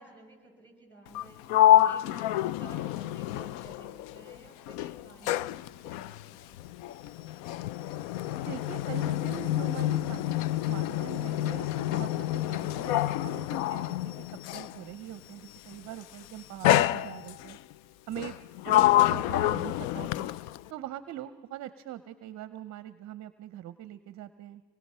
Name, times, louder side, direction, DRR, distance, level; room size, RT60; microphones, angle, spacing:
voice 1, 0.0-6.9, right 2 dB, 5° left, 1 dB, 7.3 m, -53 dB
Sliding door, 1.1-4.4 4.7-14.8 15.7-16.0 16.6-17.6 18.2-20.7, left 14 dB, 65° left, 0.5 m, -27 dB
voice 2, 8.4-14.1 14.5-17.6 18.1-18.3 18.6-20.3 20.7-24.6, right 12 dB, 35° right, 13 dB, 0.6 m, -42 dB
25.5 x 20.5 x 5.5 m, 1.4 s
supercardioid pair, 125°, 47 cm